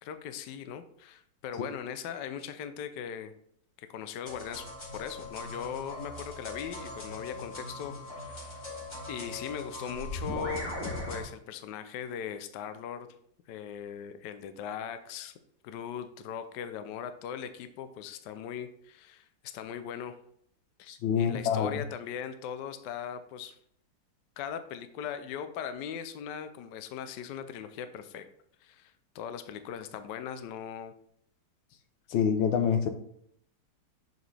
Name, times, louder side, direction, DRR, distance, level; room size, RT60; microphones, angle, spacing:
voice 1, 0.0-3.3 3.8-8.6 9.1-10.7 11.1-13.1 13.5-15.3 15.6-20.2 20.8-23.6 24.4-28.3 28.6-30.9, left 8 dB, 70° left, 10 dB, 1.2 m, -39 dB
sound 1, 4.3-11.2, left 2 dB, 30° left, 2.6 m, -39 dB
voice 2, 20.9-21.7 32.1-32.9, left 7 dB, 90° left, 8 dB, 1.6 m, -26 dB
6.9 x 6.6 x 3.3 m, 0.69 s
omnidirectional pair, 2.1 m